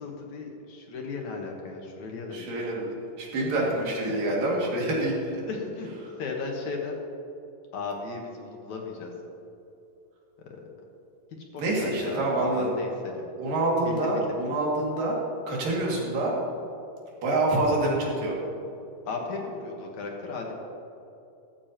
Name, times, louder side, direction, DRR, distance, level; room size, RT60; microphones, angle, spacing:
voice 1, 0.0-2.5 5.5-5.9 6.2-7.0 7.7-9.1 10.5-10.7 11.5-13.3 13.9-14.2 19.1-20.5, left 4 dB, 65° left, 0 dB, 2.5 m, -36 dB
voice 2, 2.3-5.4 11.6-12.7 13.4-15.2 15.5-16.3 17.2-18.4, right 2 dB, 80° right, -4 dB, 4.1 m, -26 dB
14.5 x 14.0 x 3.0 m, 2.7 s
omnidirectional pair, 3.9 m